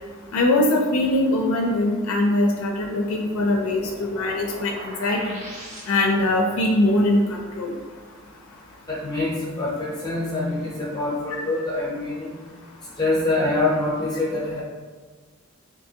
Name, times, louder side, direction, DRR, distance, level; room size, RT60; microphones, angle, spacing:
voice 1, 0.3-5.2 5.9-7.7 11.3-11.4, left 1 dB, 75° left, 1 dB, 0.4 m, -22 dB
sound 1, 2.8-6.4, right 1 dB, 30° right, 0.6 m, -40 dB
voice 2, 8.9-12.4 13.0-14.6, left 2 dB, 20° left, -5 dB, 0.6 m, -25 dB
3.4 x 2.6 x 2.7 m, 1.4 s
head